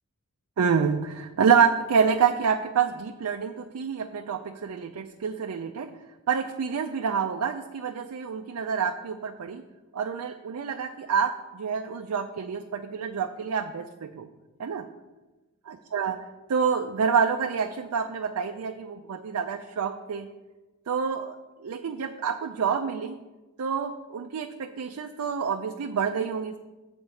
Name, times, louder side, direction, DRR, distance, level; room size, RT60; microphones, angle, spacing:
voice 1, 0.6-5.9 6.3-9.6 9.9-14.3 14.6-14.9 15.7-16.2 16.5-20.3 20.9-21.4 21.6-23.1 23.6-26.6, right 6 dB, 80° right, 5 dB, 0.5 m, -27 dB
8.0 x 4.2 x 6.9 m, 1.1 s
head